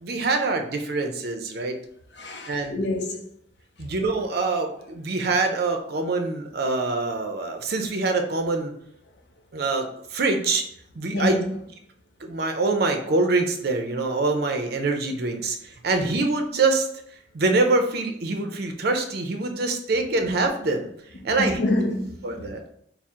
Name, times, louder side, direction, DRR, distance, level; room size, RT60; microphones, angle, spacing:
voice 1, 0.0-1.8 2.5-2.8 3.8-8.7 9.5-10.6 11.0-11.4 12.2-16.9 17.3-20.9 21.2-21.6 22.2-22.6, right 3 dB, 55° right, 0.5 m, -24 dB
voice 2, 2.2-3.2 11.1-11.4 21.4-22.5, left 1 dB, 65° left, 0.5 m, -27 dB
3.6 x 2.0 x 4.3 m
head